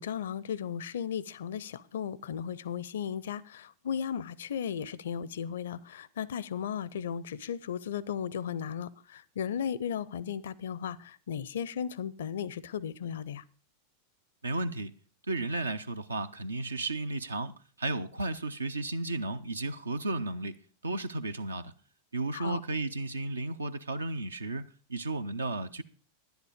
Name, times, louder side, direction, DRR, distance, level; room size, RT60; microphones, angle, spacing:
voice 1, 0.0-13.4 22.3-22.6, left 8 dB, 60° left, 0.5 m, -35 dB
voice 2, 14.4-14.9 15.3-20.6 20.8-21.7 22.1-25.8, right 2 dB, 75° right, 0.6 m, -34 dB
10.5 x 10.0 x 5.0 m
figure-of-eight pair, 90°, 0 cm